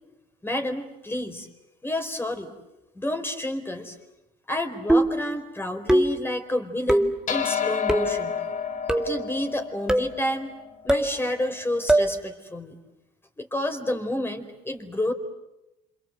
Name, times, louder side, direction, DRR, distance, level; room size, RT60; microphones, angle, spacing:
voice 1, 0.4-1.5 1.8-2.5 2.9-4.0 4.5-8.4 8.9-10.5 10.8-12.8 13.4-15.1, left 1 dB, 15° left, 6 dB, 4.4 m, -30 dB
sound 1, 4.9-5.3 5.9-6.3 6.9-7.2 7.9-8.2 8.9-9.2 9.9-10.2 10.9-11.1 11.9-12.2, right 1 dB, 5° right, 2.1 m, -21 dB
sound 2, 7.3-11.9, left 7 dB, 50° left, 3.4 m, -31 dB
27.5 x 27.0 x 7.8 m, 0.91 s
cardioid pair, 110°, 17 cm